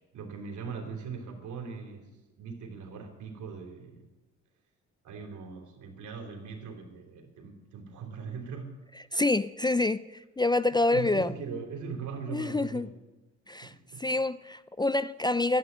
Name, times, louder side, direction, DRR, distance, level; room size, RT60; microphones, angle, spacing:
voice 1, 0.1-2.1 2.4-4.1 5.0-8.8 10.9-12.9 13.6-14.1, right 5 dB, 75° right, 3.6 m, -40 dB
voice 2, 9.1-11.3 12.3-12.9 13.5-13.7 14.0-15.6, left 2 dB, 15° left, 0.4 m, -27 dB
12.5 x 10.0 x 9.5 m
cardioid pair, 90°, 30 cm